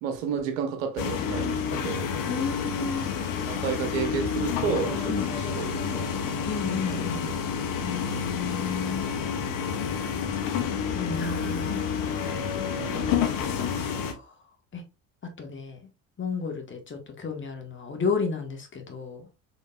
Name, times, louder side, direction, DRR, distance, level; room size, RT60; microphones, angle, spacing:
voice 1, 0.0-2.1 3.5-6.3 6.9-7.4 12.7-13.2, right 6 dB, 85° right, 1.0 m, -32 dB
sound 1, 1.0-14.1, left 7 dB, 55° left, 0.9 m, -29 dB
voice 2, 2.3-3.1 5.0-5.3 6.5-7.3 7.8-9.1 10.9-11.9 14.1-14.3 14.7-14.8 15.4-15.8 16.2-19.3, left 5 dB, 30° left, 1.4 m, -32 dB
sound 2, 4.6-9.6, left 4 dB, 5° left, 1.7 m, -44 dB
sound 3, 5.7-9.4, right 2 dB, 55° right, 2.3 m, -51 dB
4.1 x 3.6 x 2.4 m
hypercardioid pair, 65°, 39 cm